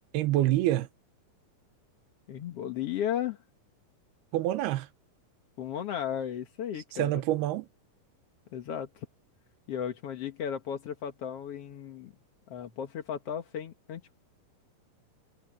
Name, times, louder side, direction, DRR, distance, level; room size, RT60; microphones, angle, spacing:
voice 1, 0.1-0.9 4.3-4.9 6.9-7.7, right 14 dB, 80° right, 3.0 m, -26 dB
voice 2, 2.3-3.4 5.6-7.2 8.5-9.1 9.7-12.1 12.5-14.1, left 9 dB, 65° left, 1.5 m, -35 dB
omnidirectional pair, 4.6 m